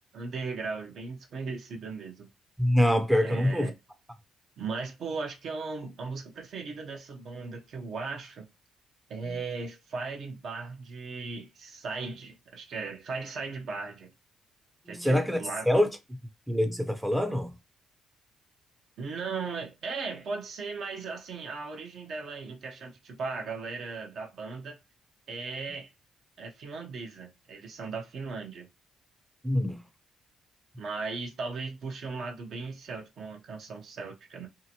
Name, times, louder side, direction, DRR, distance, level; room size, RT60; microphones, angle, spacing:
voice 1, 0.1-2.3 3.2-3.8 4.6-8.5 9.1-14.1 14.9-15.7 19.0-24.8 25.3-25.9 26.4-28.7 30.8-34.5, right 4 dB, 65° right, 0.8 m, -37 dB
voice 2, 2.6-3.7 14.9-15.4 15.7-15.9 16.5-17.5 29.4-29.8, equal, 5° right, 0.5 m, -24 dB
2.8 x 2.5 x 2.8 m
cardioid pair, 90°, 0 cm